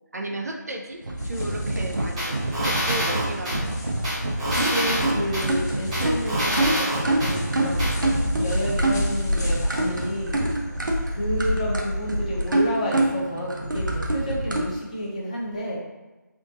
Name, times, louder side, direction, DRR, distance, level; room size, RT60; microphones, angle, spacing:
voice 1, 0.1-4.1, right 1 dB, 55° right, 2 dB, 0.5 m, -34 dB
sound 1, 1.0-14.6, right 1 dB, 80° right, 0.8 m, -26 dB
sound 2, 1.2-12.5, left 1 dB, 55° left, 1.1 m, -35 dB
sound 3, 2.2-3.6 4.0-5.5 5.9-7.3 7.8-7.9, equal, 20° right, 1.0 m, -26 dB
voice 2, 4.5-10.4 11.1-15.8, equal, 20° left, -4 dB, 0.6 m, -30 dB
3.6 x 2.5 x 3.6 m, 1.1 s
figure-of-eight pair, 165°, 10 cm